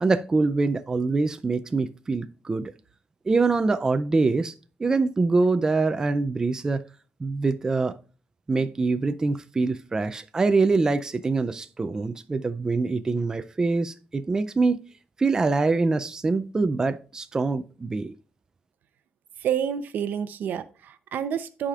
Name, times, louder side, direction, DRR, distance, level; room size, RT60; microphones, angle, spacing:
voice 1, 0.0-2.7 3.3-4.5 4.8-6.8 7.2-7.9 8.5-14.8 15.2-18.1, right 3 dB, 20° right, 0.4 m, -24 dB
voice 2, 19.4-21.7, right 8 dB, 75° right, 0.6 m, -29 dB
14.5 x 4.9 x 2.4 m
wide cardioid pair, 155°, 3 cm